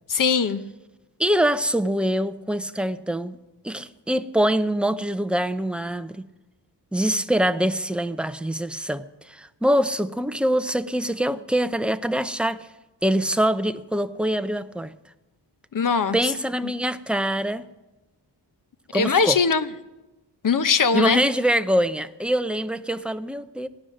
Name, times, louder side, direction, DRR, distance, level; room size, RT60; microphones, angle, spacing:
voice 1, 0.1-0.6 15.7-16.2 18.9-19.7 20.4-21.2, left 5 dB, 50° left, 0.9 m, -20 dB
voice 2, 1.2-3.4 3.6-6.2 6.9-12.7 13.0-14.9 16.1-17.7 18.9-19.4 20.9-23.7, right 1 dB, 5° right, 0.5 m, -24 dB
17.5 x 11.5 x 6.4 m
wide cardioid pair, 110°, 42 cm